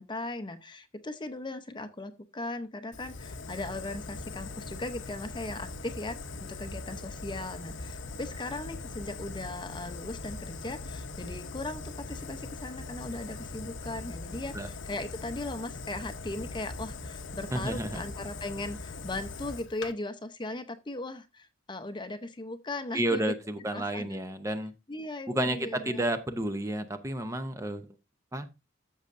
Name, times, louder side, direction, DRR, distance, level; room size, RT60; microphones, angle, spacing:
voice 1, 0.0-23.3 23.7-24.2 24.9-26.1, left 2 dB, 25° left, 10 dB, 0.7 m, -38 dB
Fire, 2.9-19.9, left 3 dB, 70° left, 0.9 m, -41 dB
voice 2, 17.5-18.0 22.9-24.7 25.3-27.8 28.3-28.5, right 1 dB, 15° right, 9 dB, 0.6 m, -31 dB
13.5 x 6.4 x 2.6 m, 0.26 s
head